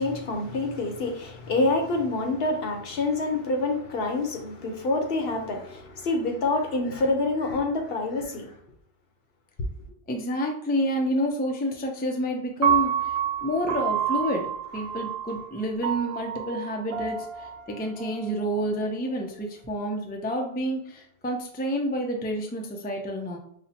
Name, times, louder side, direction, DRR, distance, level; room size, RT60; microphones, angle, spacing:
voice 1, 0.0-8.5, left 2 dB, 70° left, 0.9 m, -27 dB
voice 2, 10.1-23.4, equal, 15° left, 0.4 m, -29 dB
Piano, 12.6-18.8, right 8 dB, 75° right, 0.8 m, -29 dB
5.4 x 2.1 x 2.7 m
omnidirectional pair, 1.1 m